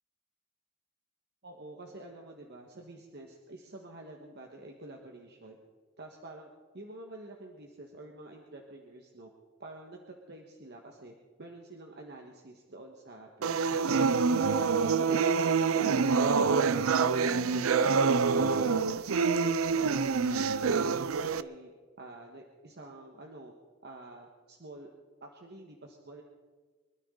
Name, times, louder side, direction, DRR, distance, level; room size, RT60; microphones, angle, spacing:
voice 1, 1.4-5.6 6.0-9.3 9.6-14.5 17.2-19.1 19.4-21.7 22.0-23.5 23.8-24.9 25.2-26.2, right 2 dB, 55° right, 1 dB, 1.5 m, -48 dB
sound 1, 13.4-21.4, right 5 dB, 85° right, 0.5 m, -26 dB
24.0 x 13.0 x 3.9 m, 1.4 s
head